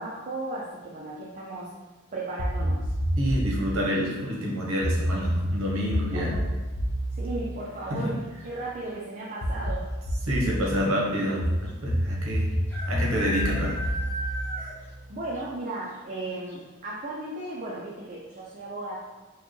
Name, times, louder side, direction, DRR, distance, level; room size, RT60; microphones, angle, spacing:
voice 1, 0.0-1.7 2.1-2.9 6.1-6.4 7.1-8.2 8.4-9.9 15.1-19.0, right 2 dB, 35° right, -5 dB, 0.5 m, -35 dB
sound 1, 2.4-3.7 4.8-8.5 9.4-10.7 11.4-15.3, equal, 75° left, 0.7 m, -29 dB
voice 2, 3.2-6.3 7.9-8.1 10.3-12.5 12.9-13.8, equal, 65° right, -3 dB, 1.0 m, -28 dB
sound 2, 5.1-5.6 7.4-7.8 8.1-8.2 8.4-8.9 9.7-9.8 10.0-10.1 11.7-11.8 12.7-15.0 15.3-15.4 15.9-16.0 16.5-16.6, equal, 10° left, 0.6 m, -36 dB
4.5 x 2.2 x 3.1 m, 1.2 s
head